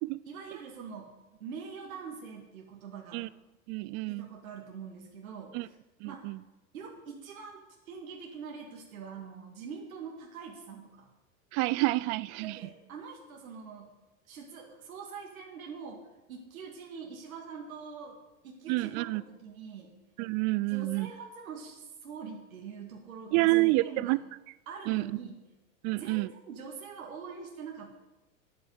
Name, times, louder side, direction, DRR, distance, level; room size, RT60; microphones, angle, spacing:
voice 1, 0.3-3.3 4.1-5.8 6.0-6.3 6.7-11.1 12.4-13.9 14.3-19.9 20.6-24.2 24.7-25.5 25.8-27.9, right 5 dB, 80° right, 2.2 m, -44 dB
voice 2, 3.7-4.3 5.5-5.7 6.0-6.4 11.5-12.6 18.7-19.2 20.2-21.1 23.3-24.2 24.9-25.2 25.8-26.3, right 22 dB, 40° right, 0.5 m, -28 dB
9.2 x 7.7 x 8.4 m
hypercardioid pair, 105°, 41 cm